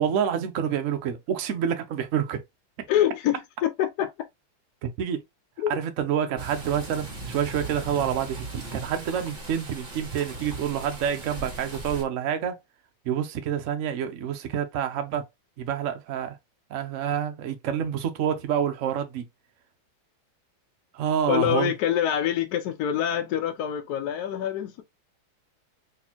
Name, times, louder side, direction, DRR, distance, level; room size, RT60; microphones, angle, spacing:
voice 1, 0.0-2.4 4.8-5.2 5.7-12.6 13.0-15.2 15.6-16.4 16.7-19.3 20.9-21.7, right 9 dB, 80° right, 0.7 m, -28 dB
voice 2, 2.9-4.1 5.6-5.7 21.3-24.8, left 10 dB, 80° left, 0.9 m, -25 dB
sound 1, 6.4-12.0, right 2 dB, 25° right, 1.2 m, -38 dB
4.2 x 3.3 x 2.9 m
omnidirectional pair, 2.2 m